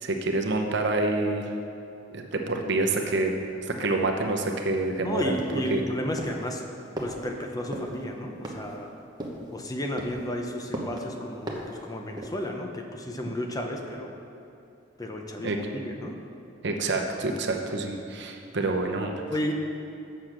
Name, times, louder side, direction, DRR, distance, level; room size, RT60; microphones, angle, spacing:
voice 1, 0.0-1.4 2.1-3.3 3.6-5.8 15.4-15.6 16.6-19.2, right 2 dB, 65° right, 3 dB, 0.9 m, -27 dB
voice 2, 5.0-6.6 7.0-8.9 9.5-14.2 15.0-16.2 19.3-19.5, equal, 20° left, 3 dB, 0.7 m, -33 dB
sound 1, 5.4-5.8 6.2-6.5 7.0-7.2 7.7-7.9 8.4-8.8 9.2-9.5 10.0-10.3 10.7-11.0 11.5-11.8 12.2-12.5, right 1 dB, 20° right, 1.0 m, -36 dB
7.8 x 6.7 x 6.0 m, 2.7 s
head